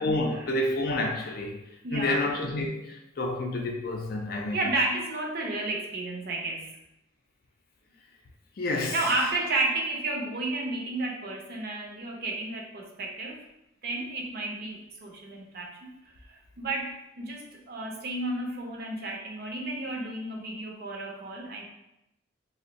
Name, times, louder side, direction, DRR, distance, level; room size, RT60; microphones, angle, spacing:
voice 1, 0.0-1.6 1.9-4.6 8.6-9.1, left 2 dB, 50° left, 0.4 m, -29 dB
voice 2, 1.8-2.3 4.5-6.8 8.7-13.5 13.8-15.9 16.3-21.6, right 2 dB, 55° right, 0.5 m, -32 dB
2.5 x 2.1 x 3.8 m
head